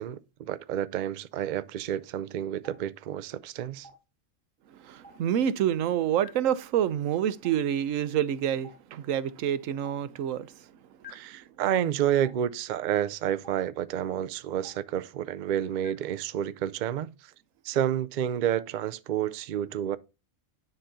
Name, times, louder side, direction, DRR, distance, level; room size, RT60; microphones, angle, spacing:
voice 1, 0.0-3.9 11.1-17.3 17.6-20.0, right 10 dB, 70° right, 0.4 m, -30 dB
Stream, 2.6-2.7 3.8-3.9 5.0-5.1 6.2-6.3 7.4-7.5 8.6-8.7 9.8-9.9 11.0-11.1 12.2-12.3 13.4-13.5 14.6-14.7 15.8-15.9, left 3 dB, 10° left, 4.1 m, -46 dB
voice 2, 4.8-10.5, right 10 dB, 85° right, 1.0 m, -27 dB
10.0 x 5.3 x 2.7 m
omnidirectional pair, 1.3 m